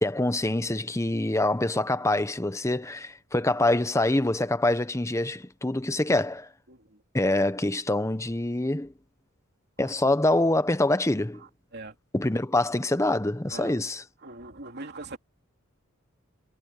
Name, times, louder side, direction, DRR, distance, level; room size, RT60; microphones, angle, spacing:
voice 1, 0.0-6.5 7.1-8.9 9.8-11.4 12.1-14.0, left 2 dB, 15° left, 1.0 m, -25 dB
voice 2, 14.2-15.2, right 2 dB, 55° right, 3.1 m, -41 dB
head